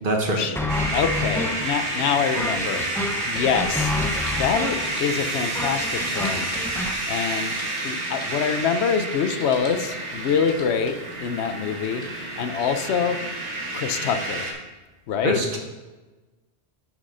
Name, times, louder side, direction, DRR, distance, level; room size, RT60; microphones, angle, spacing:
voice 1, 0.0-0.5 15.2-15.6, right 2 dB, 50° right, 1 dB, 1.3 m, -24 dB
sound 1, 0.6-7.0, left 2 dB, 5° left, 0.3 m, -30 dB
sound 2, 0.7-14.5, right 2 dB, 90° right, 1.6 m, -29 dB
voice 2, 0.9-4.0 4.3-6.5 7.1-7.6 7.8-13.2 13.7-14.5 15.1-15.6, left 7 dB, 80° left, 9 dB, 0.9 m, -25 dB
sound 3, 0.9-12.1, left 1 dB, 55° left, 1.7 m, -44 dB
6.6 x 6.2 x 5.5 m, 1.2 s
omnidirectional pair, 1.1 m